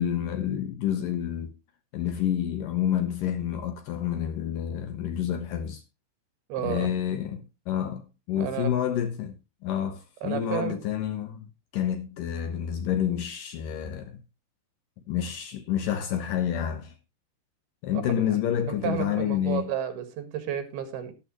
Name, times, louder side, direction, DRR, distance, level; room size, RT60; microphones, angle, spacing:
voice 1, 0.0-1.5 1.9-5.8 6.6-9.4 9.6-11.5 11.7-14.2 15.1-16.9 17.8-19.7, left 10 dB, 70° left, 2.2 m, -29 dB
voice 2, 6.5-6.9 8.4-8.7 10.2-10.8 17.9-18.0 18.3-21.1, right 10 dB, 75° right, 3.5 m, -32 dB
12.5 x 11.5 x 3.0 m
omnidirectional pair, 4.7 m